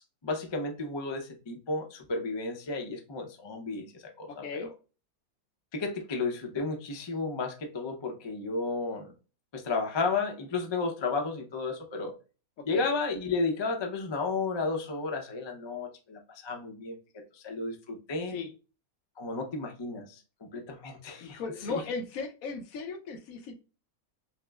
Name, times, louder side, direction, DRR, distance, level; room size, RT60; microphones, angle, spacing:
voice 1, 0.0-4.7 5.7-9.1 9.5-12.1 12.7-17.0 17.3-18.4 19.2-21.4 21.7-21.8, left 3 dB, 40° left, 2 dB, 0.4 m, -33 dB
voice 2, 4.3-4.7 12.7-12.8 18.3-18.5 21.2-23.6, left 4 dB, 70° left, 6 dB, 1.1 m, -36 dB
5.8 x 2.0 x 2.3 m, 0.34 s
omnidirectional pair, 1.6 m